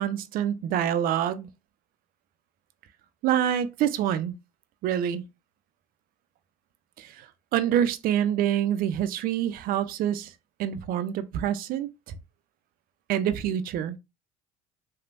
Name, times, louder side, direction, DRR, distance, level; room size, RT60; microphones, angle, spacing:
voice 1, 0.0-1.5 3.2-4.3 4.8-5.2 7.0-10.3 10.6-12.2 13.1-14.0, right 10 dB, 55° right, 0.4 m, -26 dB
3.1 x 2.1 x 2.5 m
hypercardioid pair, 65°, 18 cm